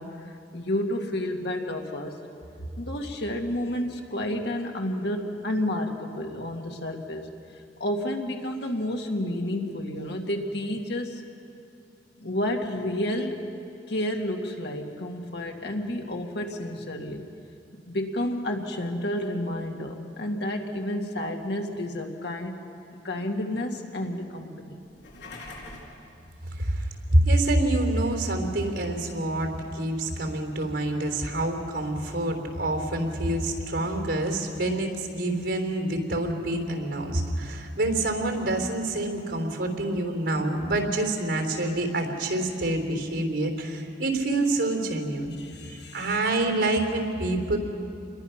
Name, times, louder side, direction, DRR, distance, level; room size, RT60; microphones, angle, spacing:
voice 1, 0.0-2.2 2.8-7.3 7.8-11.2 12.2-13.4 13.9-17.2 17.9-22.6 23.0-24.8 45.4-46.2, left 1 dB, 65° left, 2 dB, 2.0 m, -30 dB
sound 1, 24.8-26.0, left 2 dB, 80° left, 5.3 m, -42 dB
voice 2, 26.6-45.4 45.9-47.6, right 1 dB, 75° right, 3 dB, 3.5 m, -26 dB
28.0 x 22.0 x 5.9 m, 2.6 s
head